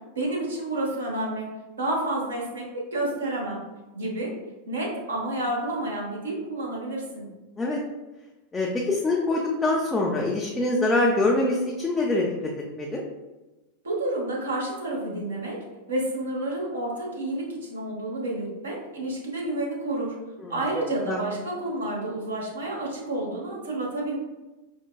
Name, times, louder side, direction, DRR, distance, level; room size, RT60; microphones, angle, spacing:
voice 1, 0.1-1.5 1.8-3.6 3.9-4.3 4.7-7.3 13.8-20.1 20.5-24.2, right 1 dB, 70° right, -4 dB, 0.9 m, -30 dB
voice 2, 8.5-12.3 12.8-13.0 20.4-20.5 21.1-21.2, left 2 dB, 15° left, -3 dB, 0.4 m, -24 dB
4.5 x 2.2 x 2.3 m, 1.1 s
figure-of-eight pair, 90°, 0 cm